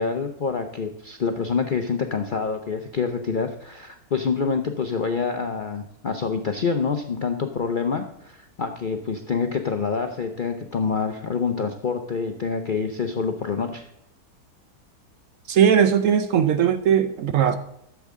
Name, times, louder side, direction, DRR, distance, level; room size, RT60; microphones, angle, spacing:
voice 1, 0.0-13.9, left 5 dB, 60° left, 5 dB, 0.5 m, -26 dB
voice 2, 15.5-17.6, right 8 dB, 65° right, 10 dB, 0.9 m, -19 dB
12.0 x 7.3 x 3.6 m, 0.82 s
omnidirectional pair, 1.7 m